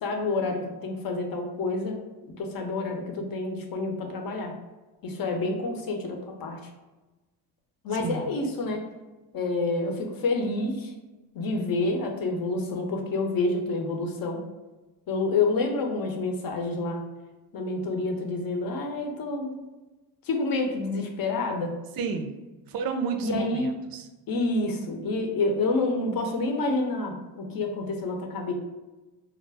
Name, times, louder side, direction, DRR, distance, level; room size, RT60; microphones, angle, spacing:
voice 1, 0.0-2.0 2.2-4.5 5.0-6.6 7.8-8.8 9.3-10.9 11.3-14.4 15.1-17.0 17.5-19.5 20.2-21.7 23.2-23.7 24.3-28.5, left 3 dB, 50° left, 3 dB, 0.7 m, -28 dB
voice 2, 8.0-8.3 22.0-22.3 22.7-24.0, right 5 dB, 55° right, 7 dB, 0.5 m, -31 dB
2.3 x 2.1 x 3.3 m, 1.1 s
supercardioid pair, 60°, 43 cm